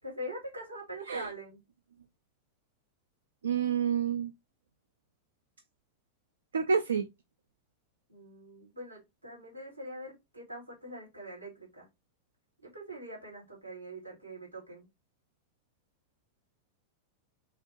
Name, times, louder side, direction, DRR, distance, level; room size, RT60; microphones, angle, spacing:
voice 1, 0.0-1.6 8.1-11.9 12.6-14.9, equal, 90° right, 2.6 m, -43 dB
voice 2, 3.4-4.3 6.5-7.1, right 6 dB, 70° right, 0.3 m, -28 dB
5.7 x 2.4 x 2.8 m
figure-of-eight pair, 90°, 0 cm